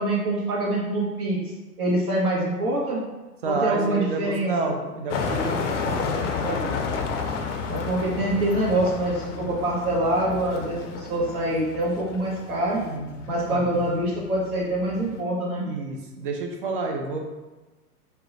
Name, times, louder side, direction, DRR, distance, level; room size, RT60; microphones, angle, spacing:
voice 1, 0.0-1.4 1.8-3.0 3.4-4.7 7.7-12.8 13.3-15.7, right 1 dB, 70° right, -3 dB, 1.0 m, -25 dB
voice 2, 3.4-6.8 12.7-13.7 15.6-17.2, right 3 dB, 40° right, 2 dB, 0.4 m, -30 dB
sound 1, 5.1-15.2, left 5 dB, 55° left, 0.5 m, -31 dB
3.5 x 2.1 x 2.7 m, 1.2 s
figure-of-eight pair, 110°, 46 cm